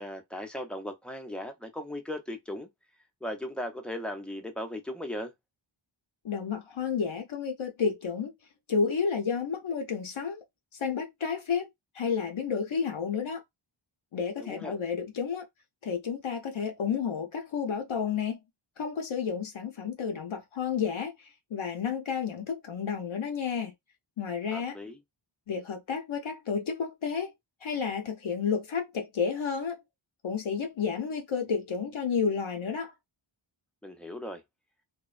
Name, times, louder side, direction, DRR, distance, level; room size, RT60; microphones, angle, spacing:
voice 1, 0.0-2.7 3.2-5.3 14.4-14.7 24.5-25.0 33.8-34.4, left 1 dB, ahead, 0.5 m, -37 dB
voice 2, 6.2-8.3 8.7-10.4 10.8-11.7 12.0-13.4 14.1-15.4 15.8-18.4 18.8-21.1 21.5-23.7 24.2-24.8 25.5-27.3 27.6-29.8 30.2-32.9, left 6 dB, 70° left, 0.6 m, -31 dB
2.5 x 2.1 x 2.4 m
wide cardioid pair, 65°, 50 cm